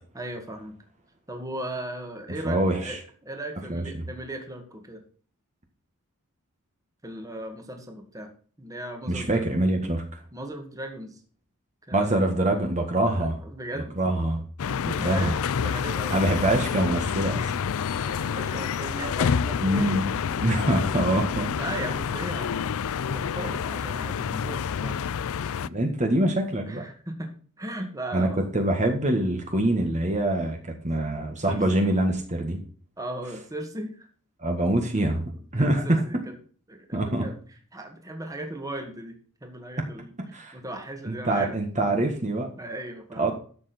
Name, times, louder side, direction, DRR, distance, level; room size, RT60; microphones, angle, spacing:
voice 1, 0.1-0.8 1.3-5.0 7.0-8.3 8.6-9.5 9.8-9.9 10.3-11.2 11.9-12.2 13.1-13.9 14.6-15.3 15.6-16.2 18.0-20.1 21.5-22.7 23.1-25.0 26.6-27.3 27.6-28.5 31.1-31.2 31.5-31.6 33.0-34.1 35.5-36.4 36.7-37.4 37.7-41.6 42.6-43.2, right 1 dB, 15° right, 4 dB, 2.0 m, -37 dB
voice 2, 2.4-3.0 3.7-4.1 9.1-10.2 11.9-13.4 14.0-14.4 14.8-15.4 16.1-17.5 19.6-21.5 25.6-26.8 28.1-28.3 28.5-30.6 30.8-32.6 34.4-35.2 35.5-36.0 36.9-37.3 39.8-39.9 40.3-40.6 41.1-42.5 43.2-43.3, right 1 dB, 35° right, 3 dB, 1.7 m, -25 dB
sound 1, 14.6-25.7, left 7 dB, 65° left, 0.4 m, -28 dB
12.5 x 7.6 x 4.4 m, 0.43 s
head